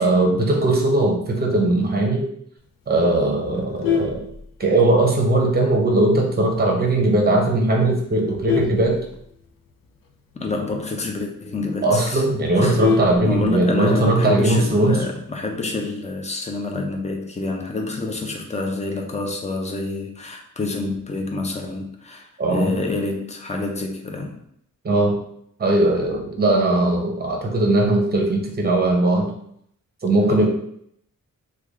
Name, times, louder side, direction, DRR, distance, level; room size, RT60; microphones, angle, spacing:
voice 1, 0.0-2.3 2.9-4.2 4.6-9.0 11.8-15.0 22.4-22.7 24.8-25.2 25.6-29.3 30.0-30.5, right 2 dB, 30° right, 0 dB, 0.7 m, -19 dB
Vehicle horn car horn honking, 3.5-5.0 5.5-5.7 6.1-6.2 6.6-6.7 7.0-7.3 7.9-9.7 10.1-10.2 10.5-10.6 11.0-11.1 11.4-11.5 11.8-13.8 15.0-15.5, left 6 dB, 85° left, 0.6 m, -26 dB
voice 2, 10.3-12.2 12.6-12.8 13.2-24.4 30.3-30.5, left 3 dB, 20° left, 2 dB, 0.4 m, -27 dB
3.2 x 2.3 x 3.5 m, 0.70 s
wide cardioid pair, 170°, 33 cm